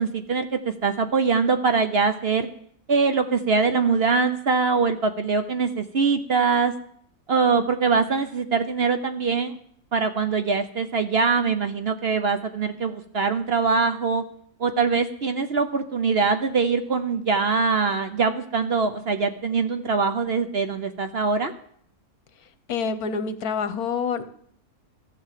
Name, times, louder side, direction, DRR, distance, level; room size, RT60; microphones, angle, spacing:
voice 1, 0.0-2.5 2.9-6.7 7.3-9.6 9.9-14.2 14.6-21.5, right 5 dB, 50° right, 8 dB, 0.9 m, -23 dB
voice 2, 22.7-24.2, left 5 dB, 75° left, 11 dB, 1.4 m, -27 dB
14.5 x 7.6 x 7.5 m, 0.66 s
omnidirectional pair, 1.6 m